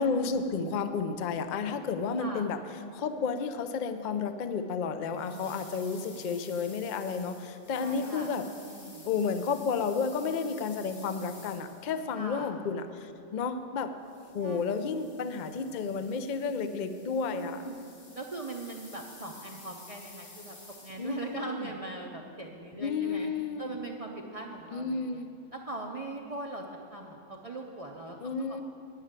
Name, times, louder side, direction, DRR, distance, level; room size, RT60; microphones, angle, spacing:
voice 1, 0.0-2.6 2.9-8.4 9.0-13.9 14.3-17.6 21.0-21.7 22.8-23.7 24.7-25.3 28.2-28.6, left 5 dB, 50° left, 9 dB, 0.6 m, -32 dB
sound 1, 5.1-12.2 14.0-21.3, left 2 dB, 70° left, 2.0 m, -52 dB
voice 2, 7.8-8.3 8.6-9.1 12.2-12.5 14.4-14.6 17.3-17.9 18.1-20.6 20.8-23.3 23.6-25.2 25.5-26.6 26.9-28.2 28.5-28.6, right 2 dB, 35° right, 0 dB, 0.6 m, -40 dB
10.0 x 6.4 x 8.7 m, 2.6 s
omnidirectional pair, 1.3 m